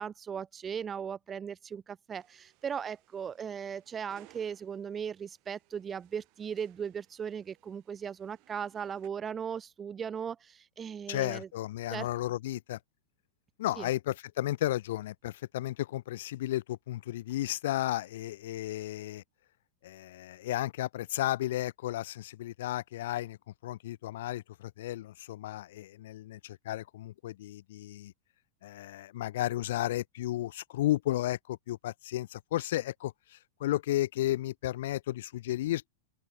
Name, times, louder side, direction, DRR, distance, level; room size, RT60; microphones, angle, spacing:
voice 1, 0.0-11.5 11.9-12.1 13.8-13.9, right 7 dB, 20° right, 1.2 m, -38 dB
sound 1, 2.2-9.1, right 30 dB, 45° right, 3.6 m, -64 dB
voice 2, 11.1-12.8 13.6-19.2 19.8-23.4 23.6-28.1 28.6-35.9, left 14 dB, 55° left, 0.7 m, -33 dB
open air
figure-of-eight pair, 90°, 0 cm